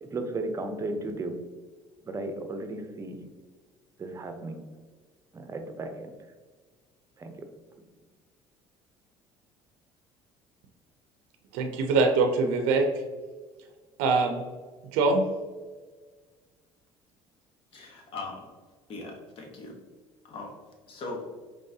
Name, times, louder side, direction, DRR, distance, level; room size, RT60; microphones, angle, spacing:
voice 1, 0.0-1.4 2.0-3.2 4.0-4.6 5.3-6.2 7.2-7.5, right 2 dB, 25° right, 6 dB, 0.7 m, -35 dB
voice 2, 11.5-12.8 14.0-14.4 14.9-15.2, right 3 dB, 90° right, 4 dB, 0.5 m, -23 dB
voice 3, 17.7-18.5 18.9-19.7 20.3-20.5 20.9-21.3, left 3 dB, 55° left, 1 dB, 1.2 m, -39 dB
5.3 x 3.1 x 2.7 m, 1.4 s
cardioid pair, 110°, 11 cm